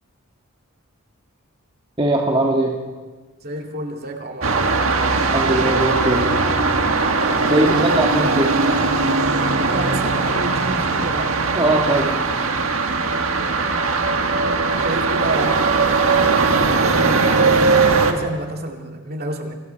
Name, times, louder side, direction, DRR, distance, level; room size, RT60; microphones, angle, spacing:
voice 1, 2.0-2.8 5.3-6.5 7.4-8.5 11.5-12.1, right 1 dB, 25° right, -1 dB, 1.9 m, -20 dB
voice 2, 3.4-5.0 7.6-8.4 9.6-11.3 13.3-14.3 14.8-16.1 16.9-19.5, right 1 dB, 45° right, 2 dB, 2.6 m, -30 dB
sound 1, 4.4-18.1, right 4 dB, 70° right, 1.7 m, -19 dB
29.0 x 24.5 x 4.6 m, 1.3 s
head